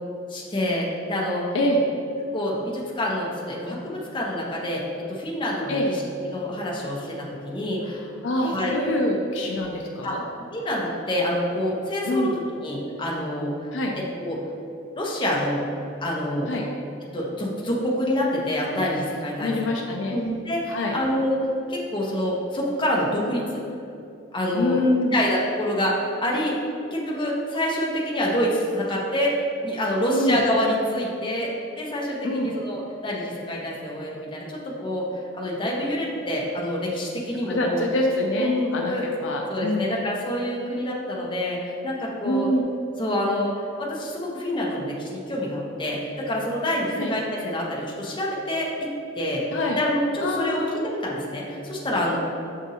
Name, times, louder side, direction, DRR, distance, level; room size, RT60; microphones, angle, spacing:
voice 1, 0.3-1.4 2.3-6.0 6.3-8.0 8.5-8.8 10.0-10.1 10.5-12.3 12.6-13.6 13.9-14.4 15.0-15.7 16.0-16.5 17.1-19.6 20.1-23.6 24.3-24.8 25.1-26.6 26.9-35.1 35.3-37.8 38.4-39.0 39.5-42.5 43.0-49.5 49.8-52.2, left 1 dB, 25° left, -4 dB, 0.7 m, -27 dB
voice 2, 8.2-10.2 12.1-12.3 13.7-13.9 16.5-16.6 19.4-20.2 20.7-21.0 24.5-25.2 30.1-30.4 32.2-32.5 37.5-39.9 42.2-42.6 46.9-47.1 49.5-49.8 50.2-50.8 52.1-52.2, left 1 dB, 65° left, 0 dB, 0.4 m, -25 dB
7.1 x 2.6 x 2.7 m, 2.6 s
head